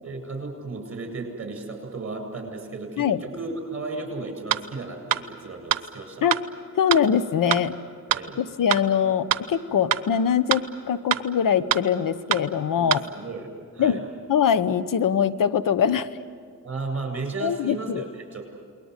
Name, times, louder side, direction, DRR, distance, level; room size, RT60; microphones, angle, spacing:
voice 1, 0.0-6.3 8.1-8.4 12.8-13.5 13.7-14.0 16.6-18.6, right 3 dB, 40° right, 4 dB, 8.0 m, -34 dB
sound 1, 4.5-4.6 5.1-5.2 5.7-5.8 6.3-6.4 6.9-7.0 7.5-7.6 8.1-8.2 8.7-8.8 9.3-9.4 9.9-10.0 10.5-10.6 11.1-11.2 11.7-11.8 12.3-12.4 12.9-13.0, right 11 dB, 90° right, 0.9 m, -22 dB
voice 2, 6.7-7.8 8.4-13.0 13.8-14.0 14.3-16.1 17.4-18.0, left 8 dB, 75° left, 14 dB, 1.1 m, -22 dB
28.5 x 21.5 x 8.3 m, 2.1 s
cardioid pair, 85°, 33 cm